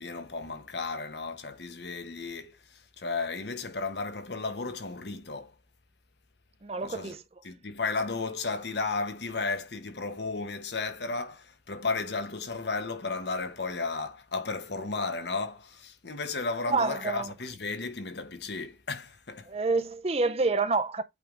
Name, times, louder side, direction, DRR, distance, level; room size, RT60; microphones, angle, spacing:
voice 1, 0.0-5.5 6.8-7.1 7.4-19.5, left 3 dB, 75° left, 1.1 m, -34 dB
voice 2, 6.6-7.2 16.6-17.3 19.5-21.0, right 3 dB, 35° right, 0.5 m, -28 dB
8.4 x 3.4 x 3.8 m
head